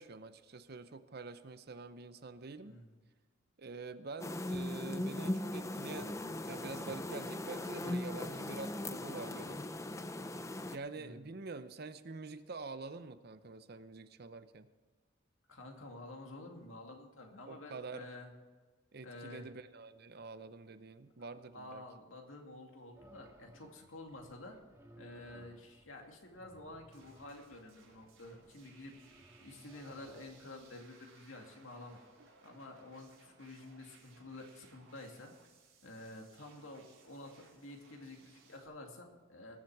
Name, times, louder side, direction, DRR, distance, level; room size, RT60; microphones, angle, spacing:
voice 1, 0.0-2.8 3.6-9.6 10.7-14.7 17.5-18.1 18.9-21.8 32.2-32.3, right 3 dB, 50° right, 12 dB, 0.7 m, -46 dB
voice 2, 2.6-2.9 10.9-11.3 15.5-18.3 19.0-19.5 21.5-24.6 25.0-29.0 29.4-32.0 32.4-35.3 35.8-39.6, left 2 dB, 75° left, 3 dB, 2.2 m, -50 dB
sound 1, 4.2-10.8, left 1 dB, 15° left, 0.5 m, -39 dB
sound 2, 22.9-30.7, right 1 dB, 15° right, 1.6 m, -61 dB
sound 3, 26.9-38.7, right 4 dB, 85° right, 4.3 m, -64 dB
20.0 x 7.4 x 4.7 m, 1.4 s
head